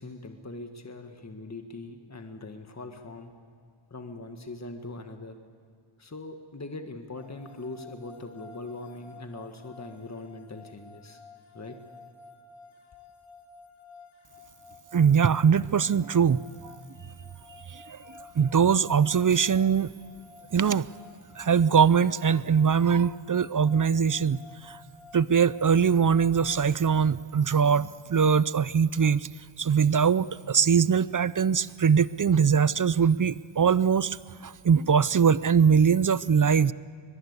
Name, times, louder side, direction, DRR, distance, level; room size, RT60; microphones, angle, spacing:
voice 1, 0.0-3.3 3.9-5.4 6.0-11.2 11.5-11.8, left 2 dB, 35° left, 5 dB, 1.7 m, -41 dB
sound 1, 7.2-27.0, left 4 dB, 75° left, 3.9 m, -52 dB
voice 2, 14.9-16.7 17.7-18.0 18.4-19.9 20.5-20.9 21.4-24.4 24.6-24.8 25.1-29.3 29.6-34.2 34.4-36.7, right 6 dB, 40° right, 18 dB, 0.5 m, -22 dB
22.5 x 22.0 x 8.2 m, 2.2 s
wide cardioid pair, 75°, 49 cm